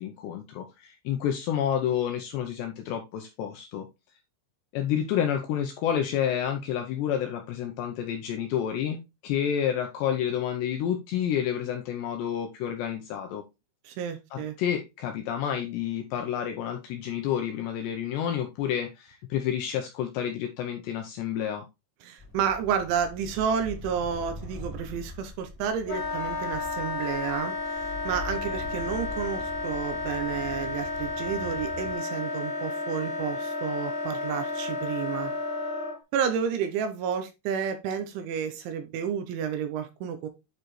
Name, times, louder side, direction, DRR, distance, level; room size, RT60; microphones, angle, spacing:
voice 1, 0.0-3.9 4.7-13.4 14.3-21.6, left 9 dB, 80° left, 2.5 m, -29 dB
voice 2, 13.8-14.6 22.0-35.3 36.1-40.3, right 7 dB, 80° right, 3.0 m, -31 dB
sound 1, 22.2-31.9, left 2 dB, 5° left, 2.3 m, -42 dB
Wind instrument woodwind instrument, 25.9-36.0, left 3 dB, 45° left, 2.5 m, -32 dB
8.9 x 4.8 x 3.1 m
omnidirectional pair, 5.8 m